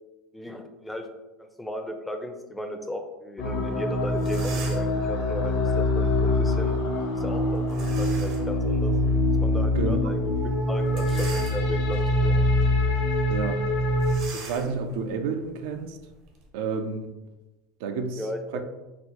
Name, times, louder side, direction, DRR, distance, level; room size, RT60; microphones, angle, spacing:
voice 1, 0.3-1.1 1.4-6.8 7.2-8.9 9.4-12.5 18.2-18.6, equal, 5° left, 0.4 m, -35 dB
sound 1, 3.4-14.1, left 1 dB, 75° left, 0.7 m, -24 dB
sound 2, 3.8-3.9 4.1-5.0 7.7-8.5 9.1-9.2 10.8-12.0 12.5-12.7 13.0-13.1 14.0-16.5, right 4 dB, 60° right, 0.8 m, -42 dB
voice 2, 9.7-10.1 13.3-13.7 14.3-16.0 16.5-17.2 17.8-18.3 18.5-18.6, right 5 dB, 75° right, 0.3 m, -30 dB
4.0 x 2.1 x 2.9 m
supercardioid pair, 115°, 0 cm